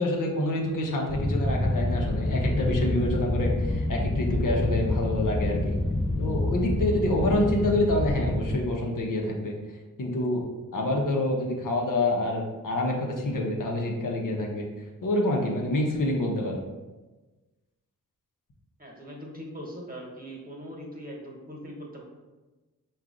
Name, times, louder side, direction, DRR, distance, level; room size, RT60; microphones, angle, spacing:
voice 1, 0.0-5.8 6.2-9.5 10.0-10.4 10.7-14.7 15.0-16.6, left 1 dB, 70° left, -1 dB, 0.8 m, -27 dB
sound 1, 1.1-8.6, left 1 dB, 20° left, 0.6 m, -27 dB
voice 2, 18.8-22.0, equal, 25° right, -1 dB, 1.2 m, -41 dB
4.6 x 2.4 x 3.8 m, 1.2 s
cardioid pair, 50°, 34 cm